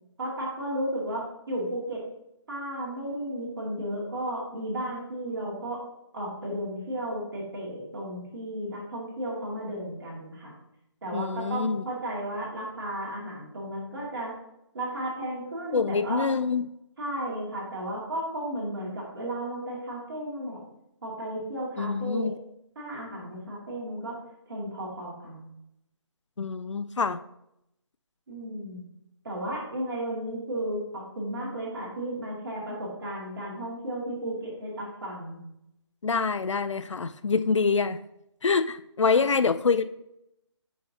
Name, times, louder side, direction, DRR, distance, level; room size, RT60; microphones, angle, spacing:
voice 1, 0.2-2.0 2.5-5.8 6.1-10.5 11.0-14.3 14.7-16.2 17.0-20.6 21.0-22.3 22.8-24.1 24.5-25.5 28.3-28.8 29.2-35.4 39.1-39.3, right 1 dB, 50° right, -4 dB, 2.3 m, -34 dB
voice 2, 11.1-11.8 15.7-16.7 21.8-22.3 26.4-27.2 36.0-38.0 38.4-39.9, left 5 dB, 85° left, 13 dB, 0.4 m, -26 dB
7.4 x 5.5 x 2.9 m, 0.82 s
figure-of-eight pair, 150°, 15 cm